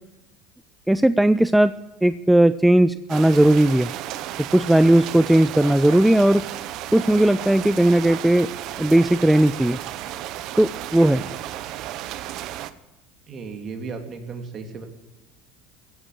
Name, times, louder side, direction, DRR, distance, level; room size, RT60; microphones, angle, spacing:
voice 1, 0.9-1.7 2.0-3.9 4.5-6.4 6.9-8.5 8.8-9.8 10.6-11.2, right 1 dB, 5° right, 14 dB, 0.5 m, -17 dB
sound 1, 3.1-12.7, right 13 dB, 60° right, 0.9 m, -33 dB
voice 2, 13.3-14.9, right 4 dB, 40° right, 4 dB, 3.2 m, -35 dB
16.0 x 8.7 x 9.8 m, 1.0 s
supercardioid pair, 100°, 0 cm